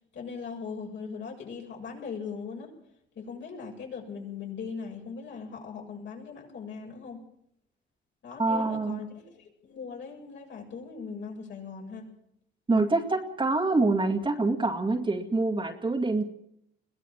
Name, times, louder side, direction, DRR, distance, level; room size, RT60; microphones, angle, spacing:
voice 1, 0.1-2.7 3.2-7.2 8.2-12.1, left 5 dB, 65° left, -1 dB, 7.5 m, -39 dB
voice 2, 8.4-9.0 12.7-16.2, right 3 dB, 25° right, 2 dB, 2.2 m, -26 dB
22.0 x 16.5 x 7.3 m, 0.75 s
cardioid pair, 90°, 20 cm